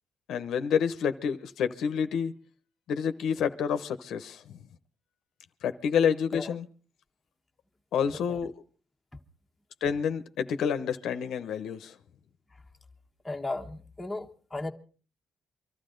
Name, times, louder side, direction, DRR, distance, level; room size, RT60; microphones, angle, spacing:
voice 1, 0.3-2.3 2.9-4.6 5.6-6.7 7.9-8.5 9.8-11.9, left 7 dB, 75° left, 0.9 m, -28 dB
voice 2, 8.1-8.4 13.2-14.7, left 2 dB, 15° left, 1.3 m, -36 dB
24.0 x 13.0 x 3.9 m
cardioid pair, 90°, 0 cm